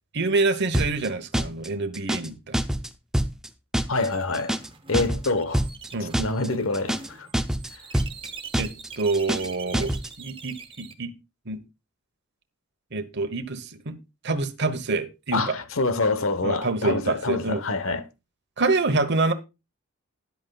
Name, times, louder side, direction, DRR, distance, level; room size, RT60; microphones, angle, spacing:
voice 1, 0.1-2.6 5.9-6.1 8.5-11.1 11.5-11.6 12.9-14.0 14.2-15.6 16.4-17.6 18.6-19.3, right 3 dB, 55° right, 1.0 m, -26 dB
sound 1, 0.7-1.1 1.3-1.7 1.9-2.3 2.5-2.9 3.1-3.5 3.7-4.1 4.3-4.7 4.9-5.3 5.5-5.9 6.1-6.5 6.7-7.1 7.3-7.7 7.9-8.3 8.5-8.9 9.1-9.5 9.7-10.1, right 1 dB, 5° right, 0.5 m, -25 dB
voice 2, 3.9-4.5 4.9-5.6 6.0-7.3 15.3-18.0, left 3 dB, 70° left, 1.1 m, -26 dB
sound 2, 4.0-10.9, right 5 dB, 25° right, 1.0 m, -43 dB
13.0 x 10.5 x 2.3 m
head